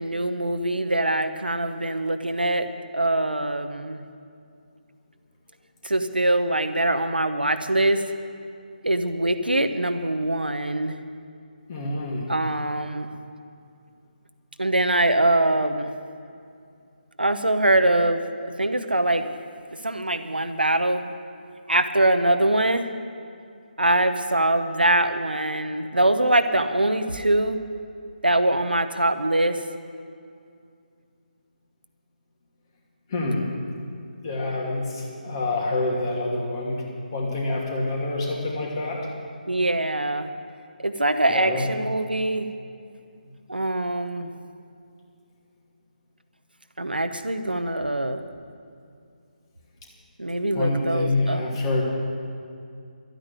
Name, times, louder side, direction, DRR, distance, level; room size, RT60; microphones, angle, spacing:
voice 1, 0.0-2.7 2.9-4.0 5.8-8.0 8.8-11.0 12.3-13.1 14.6-15.9 17.2-19.3 19.8-21.0 21.7-22.9 23.8-27.6 28.2-29.6 39.5-40.3 40.8-42.5 43.5-44.3 46.8-48.2 50.2-51.4, right 1 dB, 85° right, 8 dB, 1.0 m, -23 dB
voice 2, 11.7-12.3 33.1-33.4 34.2-36.8 37.1-39.0 41.3-41.7 50.5-51.8, left 2 dB, 30° left, -2 dB, 2.6 m, -26 dB
12.0 x 9.1 x 9.5 m, 2.4 s
figure-of-eight pair, 150°, 5 cm